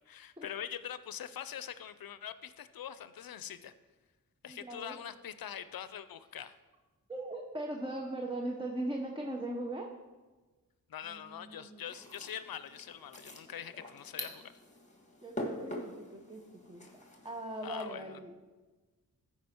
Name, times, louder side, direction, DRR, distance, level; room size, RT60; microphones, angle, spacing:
voice 1, 0.1-3.7 4.4-6.6 10.9-14.5 17.6-18.2, left 9 dB, 80° left, 13 dB, 0.5 m, -43 dB
voice 2, 4.5-4.9 7.1-9.9 11.1-11.9 15.2-18.5, right 1 dB, 15° right, 1 dB, 0.9 m, -40 dB
sound 1, 11.8-17.8, left 1 dB, 20° left, 1.6 m, -45 dB
14.0 x 5.0 x 4.4 m, 1.3 s
wide cardioid pair, 65°, 35 cm